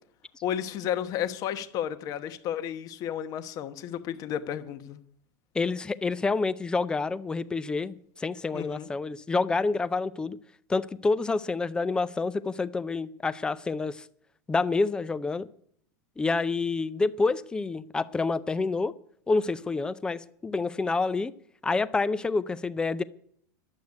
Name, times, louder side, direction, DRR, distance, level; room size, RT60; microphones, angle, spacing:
voice 1, 0.4-5.0 8.5-8.9, left 10 dB, 40° left, 1.0 m, -32 dB
voice 2, 5.5-10.4 10.7-14.0 14.5-15.5 16.2-18.9 19.3-21.3 21.6-23.0, left 3 dB, 10° left, 0.4 m, -28 dB
11.5 x 8.0 x 9.6 m
supercardioid pair, 150°, 10 cm